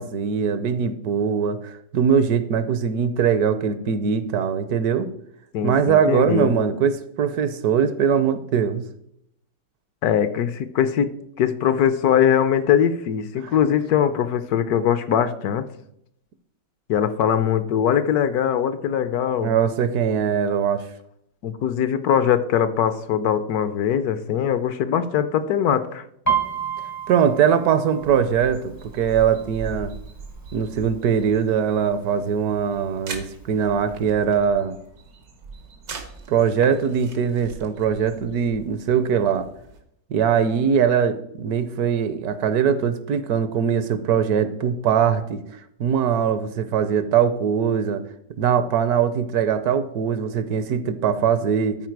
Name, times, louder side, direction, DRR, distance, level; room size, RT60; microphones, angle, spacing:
voice 1, 0.0-5.1 5.6-8.8 13.4-13.5 19.4-20.9 27.1-29.9 30.5-34.8 36.3-39.5 40.1-48.0 48.4-51.8, right 7 dB, 70° right, 12 dB, 1.1 m, -21 dB
voice 2, 5.5-6.5 10.0-11.1 11.4-15.6 16.9-19.5 21.4-26.0, left 9 dB, 70° left, 12 dB, 1.0 m, -21 dB
Piano, 26.3-29.9 30.3-30.7 31.0-31.6 32.2-32.3 32.6-33.6 34.0-34.1, right 7 dB, 20° left, 0.5 m, -29 dB
sound 1, 28.0-39.8, right 4 dB, 90° right, 1.9 m, -41 dB
13.5 x 4.6 x 4.6 m, 0.74 s
omnidirectional pair, 1.8 m